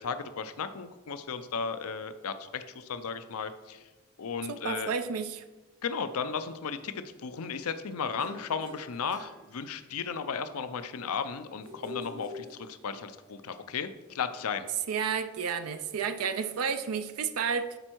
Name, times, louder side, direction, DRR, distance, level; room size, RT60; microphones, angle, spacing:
voice 1, 0.0-3.8 4.2-4.9 5.8-14.7, left 6 dB, 85° left, 11 dB, 0.5 m, -35 dB
voice 2, 4.5-5.4 14.9-17.8, right 6 dB, 80° right, 9 dB, 0.5 m, -31 dB
sound 1, 8.2-10.1 11.6-13.2, left 2 dB, 60° right, 1.8 m, -46 dB
12.0 x 4.4 x 4.5 m, 1.2 s
head